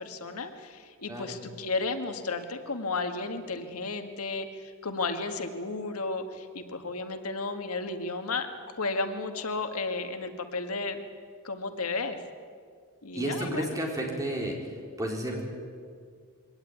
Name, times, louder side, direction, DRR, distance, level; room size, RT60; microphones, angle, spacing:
voice 1, 0.0-8.5 8.8-11.0 11.4-12.2 13.0-13.7, left 3 dB, 85° left, 7 dB, 1.8 m, -33 dB
voice 2, 1.1-1.4 13.1-14.7 15.0-15.4, right 1 dB, 15° right, 0 dB, 4.3 m, -32 dB
22.5 x 18.0 x 9.5 m, 2.1 s
head